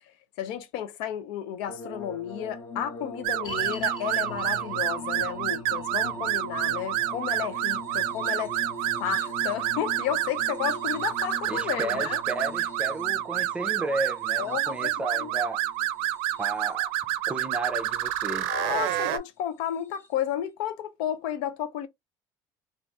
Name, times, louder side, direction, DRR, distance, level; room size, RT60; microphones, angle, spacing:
voice 1, 0.4-8.6 9.0-12.2 14.4-14.9 15.2-15.3 18.5-21.9, left 10 dB, 85° left, 0.6 m, -32 dB
sound 1, 1.7-16.9 17.8-18.5 19.9-20.1, left 2 dB, 25° left, 0.7 m, -42 dB
sound 2, 3.2-19.2, right 14 dB, 80° right, 0.5 m, -29 dB
sound 3, 3.4-14.7 15.0-15.1 15.7-15.8, left 1 dB, 55° left, 1.2 m, -48 dB
voice 2, 11.5-15.6 16.4-16.9 17.3-18.5, right 2 dB, 15° right, 0.6 m, -33 dB
2.5 x 2.5 x 3.3 m
cardioid pair, 130°, 9 cm